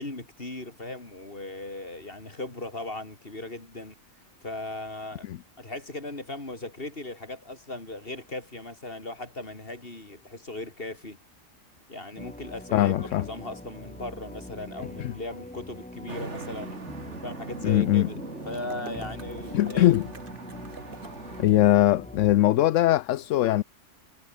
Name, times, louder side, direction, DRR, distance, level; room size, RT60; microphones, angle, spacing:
voice 1, 0.0-4.0 4.4-11.2 11.9-16.8 17.2-18.2 18.4-19.9, left 2 dB, 50° left, 4.5 m, -38 dB
sound 1, 12.2-22.4, left 1 dB, 5° left, 0.9 m, -43 dB
voice 2, 12.7-13.2 15.0-15.1 17.6-18.1 19.5-20.1 21.4-23.6, left 13 dB, 80° left, 1.0 m, -21 dB
Traffic noise roadway noise, 16.1-21.4, right 4 dB, 70° right, 2.7 m, -41 dB
sound 2, 18.5-21.5, right 4 dB, 45° right, 2.1 m, -48 dB
omnidirectional pair, 1.3 m